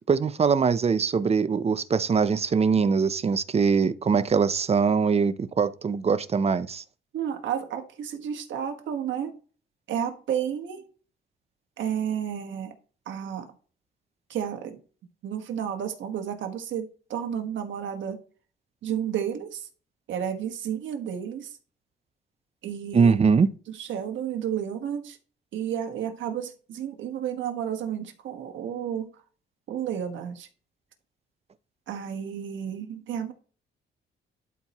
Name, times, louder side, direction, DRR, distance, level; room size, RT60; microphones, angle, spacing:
voice 1, 0.1-6.8 22.9-23.5, right 5 dB, 30° right, 0.6 m, -22 dB
voice 2, 7.1-9.4 9.9-10.8 11.8-12.7 13.0-13.5 14.3-14.8 15.2-18.2 18.8-19.7 20.1-21.6 22.6-23.3 23.7-25.2 25.5-29.1 29.7-30.5 31.9-33.3, right 9 dB, 70° right, 1.5 m, -31 dB
11.5 x 4.4 x 3.0 m
cardioid pair, 90°, 20 cm